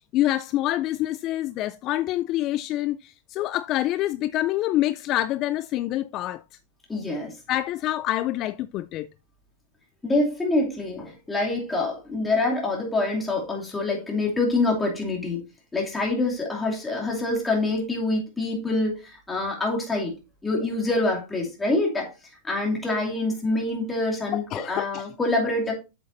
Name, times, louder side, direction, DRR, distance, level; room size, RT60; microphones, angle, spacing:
voice 1, 0.1-6.4 7.5-9.1 24.3-25.1, left 14 dB, 35° left, 0.3 m, -26 dB
voice 2, 6.9-7.3 10.0-15.4 15.7-20.1 20.4-22.1 22.4-25.7, left 2 dB, 10° left, 2.6 m, -26 dB
8.0 x 7.5 x 2.6 m
supercardioid pair, 145°, 0 cm